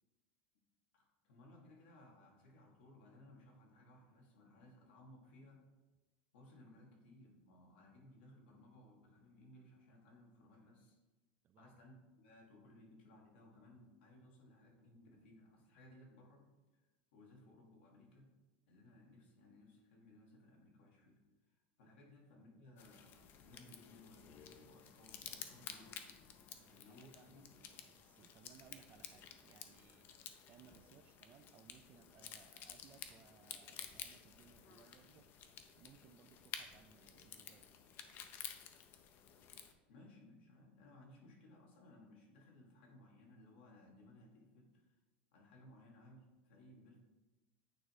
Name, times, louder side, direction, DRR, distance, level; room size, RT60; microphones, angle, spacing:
voice 1, 0.9-5.6 6.3-11.0 11.6-16.5 17.1-18.3 18.7-27.5 39.1-39.3 39.9-45.0 45.3-47.0, left 1 dB, 80° left, 0 dB, 1.9 m, -62 dB
sound 1, 22.8-39.7, left 8 dB, 35° left, 0.5 m, -53 dB
voice 2, 26.5-35.3 35.7-37.7, right 9 dB, 30° right, 10 dB, 0.4 m, -65 dB
8.7 x 3.1 x 4.7 m, 1.1 s
supercardioid pair, 145°, 6 cm